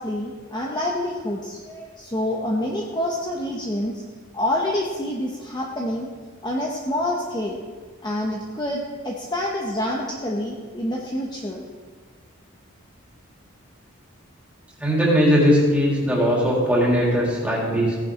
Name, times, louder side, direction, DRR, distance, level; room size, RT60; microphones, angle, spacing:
voice 1, 0.0-3.9 4.3-6.1 6.4-7.6 8.0-11.6, left 1 dB, 20° left, -1 dB, 1.0 m, -27 dB
voice 2, 14.8-18.0, equal, 5° right, -5 dB, 3.4 m, -19 dB
17.0 x 10.5 x 3.8 m, 1.5 s
head